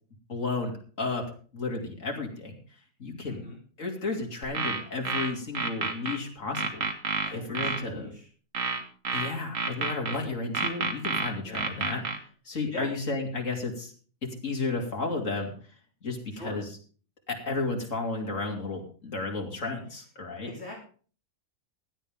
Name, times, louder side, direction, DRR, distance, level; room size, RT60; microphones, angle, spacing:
voice 1, 0.3-1.2 1.5-2.6 3.0-3.4 3.8-6.8 7.3-8.1 9.1-12.0 12.4-13.9 14.2-15.5 16.0-16.7 17.3-20.5, left 3 dB, 70° left, 1 dB, 3.2 m, -32 dB
voice 2, 3.3-3.6 7.2-8.3 11.5-11.7 12.7-12.9 16.3-16.6 20.4-20.7, left 2 dB, 50° left, -1 dB, 3.1 m, -41 dB
sound 1, 4.4-6.2 6.5-7.8 8.5-10.2 10.5-12.2, right 4 dB, 70° right, 2.0 m, -29 dB
16.5 x 11.0 x 3.6 m, 0.41 s
omnidirectional pair, 1.4 m